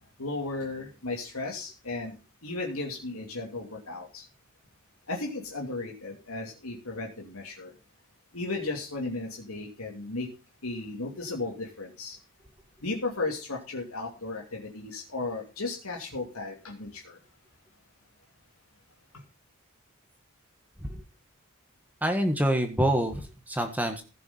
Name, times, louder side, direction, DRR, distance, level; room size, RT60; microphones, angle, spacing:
voice 1, 0.2-2.1 2.4-4.3 5.1-7.7 8.3-10.3 10.6-12.2 12.8-17.2 19.1-19.2, left 3 dB, 80° left, 0 dB, 2.9 m, -35 dB
voice 2, 22.0-24.0, right 1 dB, 10° right, 5 dB, 1.5 m, -26 dB
16.0 x 7.1 x 5.6 m, 0.32 s
head